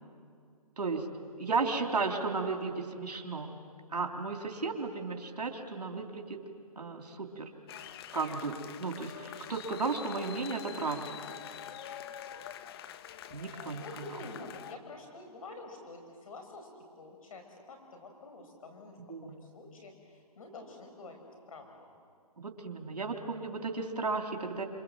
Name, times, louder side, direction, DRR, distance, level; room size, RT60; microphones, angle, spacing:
voice 1, 1.4-3.5 3.9-6.4 6.8-7.5 8.1-11.2 13.3-13.8 19.1-19.4 22.4-24.6, right 4 dB, 85° right, 3 dB, 3.6 m, -34 dB
sound 1, 7.7-14.7, left 10 dB, 40° left, 1.1 m, -45 dB
voice 2, 13.7-16.7 17.0-21.7, left 2 dB, 60° left, 4 dB, 5.0 m, -48 dB
28.0 x 27.5 x 7.6 m, 2.2 s
hypercardioid pair, 145°, 20 cm